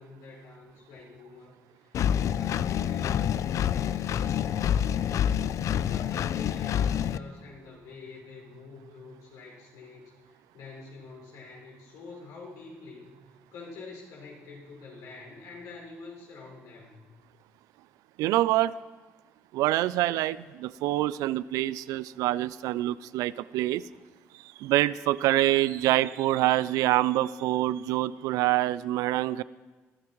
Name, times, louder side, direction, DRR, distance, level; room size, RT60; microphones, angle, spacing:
voice 1, 0.0-13.1 13.5-17.1, left 3 dB, 85° left, -2 dB, 5.4 m, -46 dB
Engine, 1.9-7.2, left 9 dB, 65° left, 0.4 m, -27 dB
voice 2, 18.2-18.8 19.5-23.9 24.3-29.4, right 15 dB, 90° right, 18 dB, 0.3 m, -26 dB
22.0 x 13.5 x 3.1 m, 1.3 s
cardioid pair, 80°, 6 cm